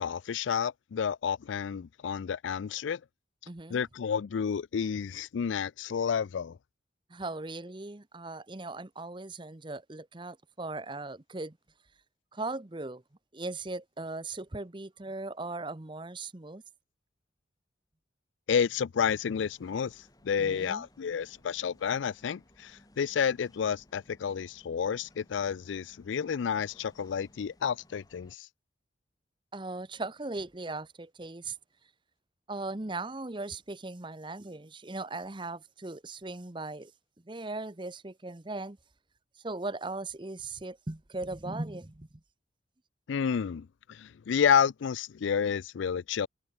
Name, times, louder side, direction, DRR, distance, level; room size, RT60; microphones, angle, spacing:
voice 1, 0.0-3.0 3.7-6.6 18.5-19.9 20.2-28.5 43.1-46.3, left 7 dB, 90° left, 0.4 m, -30 dB
voice 2, 3.5-3.8 7.1-11.6 12.3-13.0 13.3-16.6 20.4-20.8 29.5-31.5 32.5-36.9 37.3-38.8 39.4-42.1, right 2 dB, 25° right, 0.9 m, -38 dB
sound 1, 19.0-28.4, left 1 dB, 20° left, 4.8 m, -62 dB
head